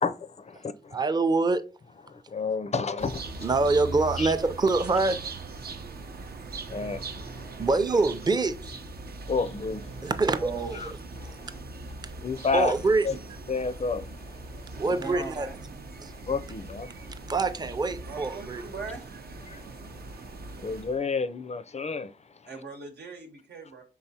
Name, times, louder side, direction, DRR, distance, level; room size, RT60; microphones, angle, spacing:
voice 1, 0.0-1.0 2.1-3.5 4.1-4.3 6.7-7.6 9.3-10.1 10.7-10.9 11.2-11.6 12.2-12.7 13.0-13.1 13.5-14.8 16.1-17.3 19.4-22.5, left 4 dB, 40° left, 0.4 m, -32 dB
voice 2, 0.9-1.6 3.4-5.2 7.6-8.8 10.0-10.5 12.0-12.1 12.5-13.1 14.8-15.5 16.0-16.1 17.3-18.6, right 3 dB, 25° right, 0.5 m, -25 dB
sound 1, 3.0-21.0, right 3 dB, 70° right, 0.6 m, -40 dB
voice 3, 10.4-10.8 14.8-15.6 18.1-19.0 22.5-23.8, right 4 dB, 90° right, 1.1 m, -39 dB
4.6 x 3.6 x 2.7 m
cardioid pair, 60°, 17 cm